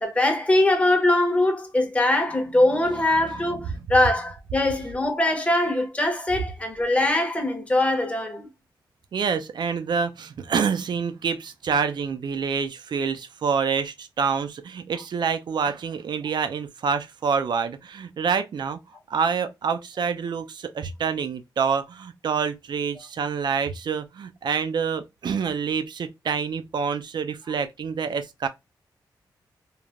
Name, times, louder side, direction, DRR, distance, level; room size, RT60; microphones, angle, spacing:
voice 1, 0.0-8.5, left 1 dB, 15° left, 0.8 m, -22 dB
voice 2, 9.1-18.8 19.1-28.5, right 6 dB, 65° right, 0.4 m, -27 dB
3.2 x 2.1 x 2.4 m
cardioid pair, 80°, 8 cm